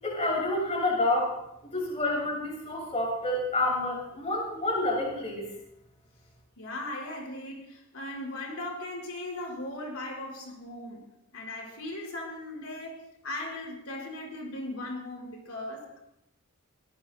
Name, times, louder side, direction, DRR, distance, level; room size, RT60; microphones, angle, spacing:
voice 1, 0.0-1.3 1.7-5.5, left 2 dB, 30° left, -3 dB, 7.1 m, -28 dB
voice 2, 6.6-11.0 11.3-16.0, left 1 dB, 80° left, -2 dB, 5.0 m, -38 dB
24.0 x 19.0 x 2.2 m, 0.80 s
head